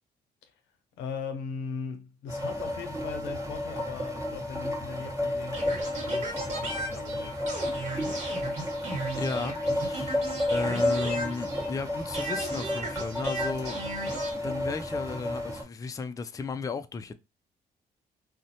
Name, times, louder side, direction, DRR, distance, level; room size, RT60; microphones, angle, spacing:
voice 1, 1.0-7.4, left 5 dB, 85° left, 0.6 m, -39 dB
sound 1, 2.3-15.6, left 1 dB, 15° right, 1.0 m, -32 dB
sound 2, 5.5-11.8 12.1-14.3, right 2 dB, 40° right, 1.4 m, -36 dB
voice 2, 9.2-10.2 10.5-13.8 14.3-17.1, left 4 dB, 20° left, 0.3 m, -34 dB
2.6 x 2.1 x 2.6 m
supercardioid pair, 55°, 19 cm